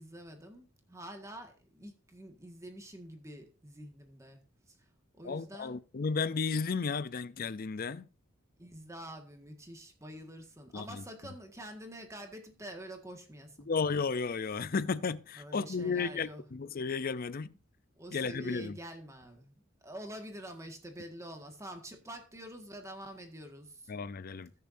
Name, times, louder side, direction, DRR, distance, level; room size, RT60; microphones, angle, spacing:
voice 1, 0.0-4.4 4.7-4.8 5.1-5.8 8.6-13.7 15.4-16.5 18.0-19.5 19.8-23.9, right 1 dB, 15° right, 1.7 m, -47 dB
voice 2, 5.2-8.1 10.7-11.0 13.7-17.5 18.1-18.8 23.9-24.5, left 5 dB, 45° left, 0.5 m, -33 dB
20.0 x 6.9 x 2.7 m
head